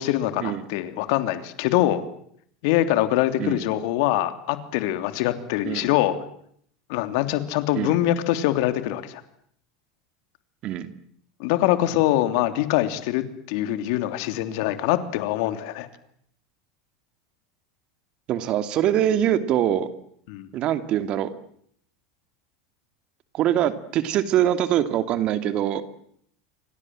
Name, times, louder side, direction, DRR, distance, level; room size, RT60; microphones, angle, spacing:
voice 1, 0.0-2.0 2.6-6.1 6.9-9.2 11.4-15.9 20.3-20.5, left 14 dB, 65° left, 9 dB, 3.2 m, -24 dB
voice 2, 18.3-20.0 20.5-21.3 23.3-25.8, right 11 dB, 50° right, 10 dB, 2.7 m, -23 dB
28.5 x 25.5 x 7.8 m, 0.68 s
hypercardioid pair, 95°, 2 cm